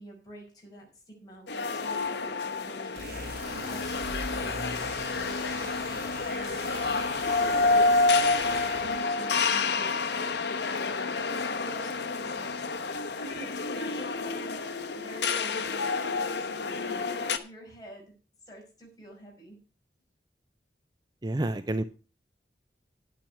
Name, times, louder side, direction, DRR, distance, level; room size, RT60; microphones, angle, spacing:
voice 1, 0.0-5.7 6.3-6.8 7.4-10.7 11.1-12.7 13.2-18.1 18.5-19.6, right 1 dB, 20° left, -1 dB, 5.5 m, -47 dB
sound 1, 1.5-17.4, left 3 dB, 70° left, 1.1 m, -29 dB
sound 2, 3.0-9.1, right 1 dB, 55° right, 4.8 m, -42 dB
voice 2, 21.2-21.8, right 1 dB, 25° right, 11 dB, 0.5 m, -29 dB
10.5 x 9.3 x 5.7 m, 0.35 s
head